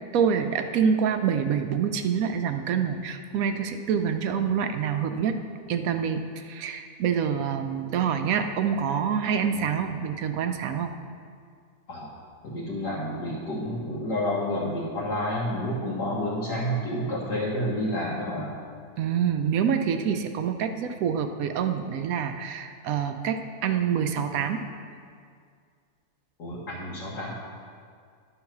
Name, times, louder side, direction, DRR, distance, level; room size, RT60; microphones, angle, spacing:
voice 1, 0.1-5.4 5.7-10.9 19.0-24.6, right 7 dB, 70° right, 7 dB, 0.9 m, -26 dB
voice 2, 12.4-18.5 26.4-27.3, equal, 80° left, -6 dB, 1.8 m, -29 dB
11.5 x 3.9 x 5.9 m, 2.2 s
omnidirectional pair, 1.7 m